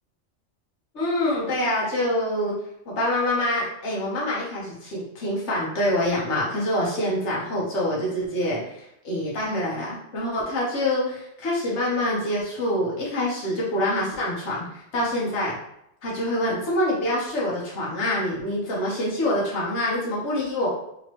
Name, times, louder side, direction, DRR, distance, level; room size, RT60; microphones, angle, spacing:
voice 1, 0.9-2.5 2.9-15.6 16.0-20.7, left 1 dB, 70° left, -5 dB, 1.3 m, -26 dB
3.5 x 2.9 x 3.0 m, 0.79 s
omnidirectional pair, 1.2 m